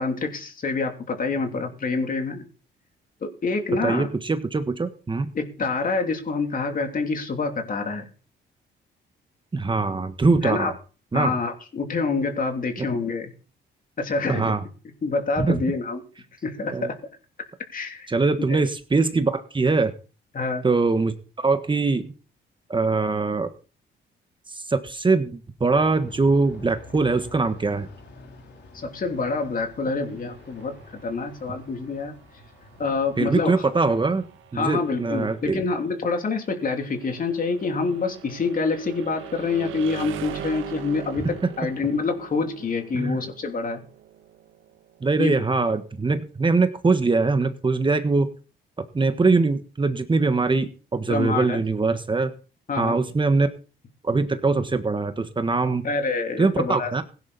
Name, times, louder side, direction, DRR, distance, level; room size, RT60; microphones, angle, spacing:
voice 1, 0.0-2.4 3.2-4.1 5.3-8.0 10.4-10.7 11.1-13.3 14.0-14.6 15.0-16.0 16.4-17.0 17.7-18.1 18.5-18.6 20.3-20.6 28.7-32.1 32.8-33.6 34.6-43.8 45.2-45.4 51.1-51.6 52.7-53.0 55.8-56.9, left 4 dB, 45° left, 4 dB, 3.1 m, -26 dB
voice 2, 3.8-5.3 9.5-10.7 11.1-11.4 12.8-12.9 14.3-14.6 15.4-15.6 16.7-16.9 18.1-19.9 20.6-22.1 22.7-23.5 24.5-27.9 33.2-34.2 34.5-35.6 42.9-43.2 45.0-48.3 48.9-52.3 52.8-53.5 54.0-55.9 56.4-57.0, right 3 dB, 25° right, 9 dB, 1.5 m, -22 dB
Aircraft, 25.7-34.7, left 2 dB, 60° left, 3.6 m, -48 dB
sound 1, 30.0-45.8, right 10 dB, 85° right, 1.5 m, -42 dB
16.5 x 10.5 x 4.2 m, 0.36 s
cardioid pair, 90°, 20 cm